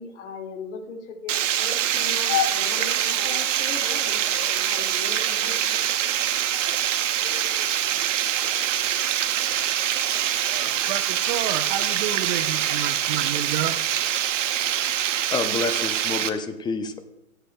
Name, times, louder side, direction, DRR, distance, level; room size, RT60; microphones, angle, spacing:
voice 1, 0.0-5.8, left 5 dB, 55° left, 3 dB, 2.1 m, -38 dB
Water, 1.3-16.3, right 10 dB, 60° right, 0.9 m, -24 dB
sound 1, 2.3-3.5 4.3-5.6 6.3-6.8 7.2-7.7 8.4-9.7 10.5-11.0, left 9 dB, 35° left, 1.2 m, -34 dB
voice 2, 10.5-13.8, right 10 dB, 35° right, 10 dB, 0.7 m, -30 dB
voice 3, 15.3-17.0, left 4 dB, 10° left, 9 dB, 0.5 m, -28 dB
21.0 x 7.9 x 2.2 m, 0.90 s
hypercardioid pair, 115°, 42 cm